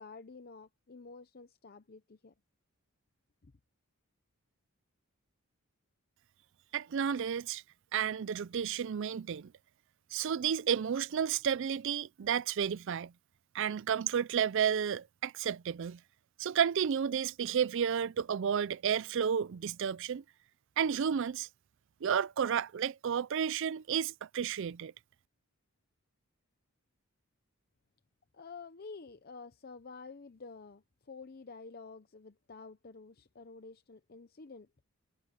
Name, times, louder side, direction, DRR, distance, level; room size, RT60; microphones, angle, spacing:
voice 1, 0.0-2.3 28.3-34.7, left 4 dB, 45° left, 0.6 m, -50 dB
voice 2, 6.7-7.6 7.9-9.5 10.1-13.1 13.5-16.0 16.4-20.2 20.8-21.5 22.0-24.9, right 8 dB, 55° right, 0.4 m, -32 dB
head